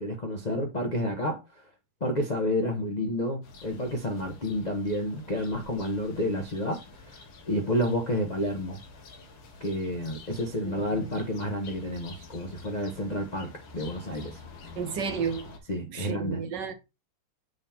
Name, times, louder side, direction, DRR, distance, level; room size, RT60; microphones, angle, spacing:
voice 1, 0.0-1.4 2.0-6.8 7.5-8.8 9.6-14.4 15.7-16.4, left 1 dB, 40° left, 0.5 m, -30 dB
sound 1, 3.4-15.6, left 4 dB, 70° left, 2.1 m, -48 dB
voice 2, 10.7-11.1 14.8-15.5 15.9-16.7, right 6 dB, 65° right, 1.3 m, -32 dB
7.8 x 3.8 x 4.3 m
omnidirectional pair, 2.4 m